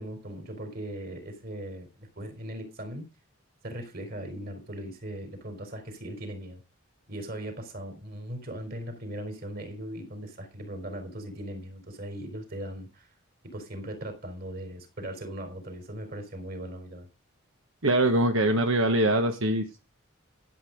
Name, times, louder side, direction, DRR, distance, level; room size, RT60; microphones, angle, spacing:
voice 1, 0.0-3.0 3.6-6.6 7.1-13.1 13.4-17.1, right 1 dB, 45° right, 3.9 m, -39 dB
voice 2, 17.8-19.8, right 1 dB, 70° right, 1.3 m, -23 dB
13.0 x 7.9 x 5.1 m
head